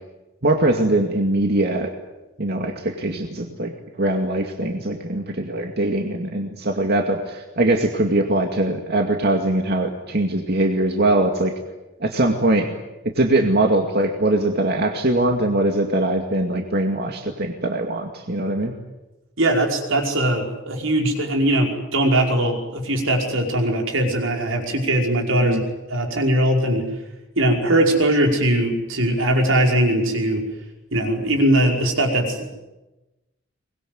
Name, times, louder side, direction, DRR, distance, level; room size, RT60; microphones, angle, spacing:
voice 1, 0.4-1.9 2.4-3.7 4.0-11.5 12.0-12.7 13.2-18.7 25.4-25.6, right 1 dB, 55° right, 3 dB, 2.3 m, -21 dB
voice 2, 19.4-26.8 27.4-30.4 30.9-32.5, right 1 dB, 85° right, 2 dB, 5.4 m, -20 dB
24.0 x 21.0 x 9.5 m, 1.1 s
head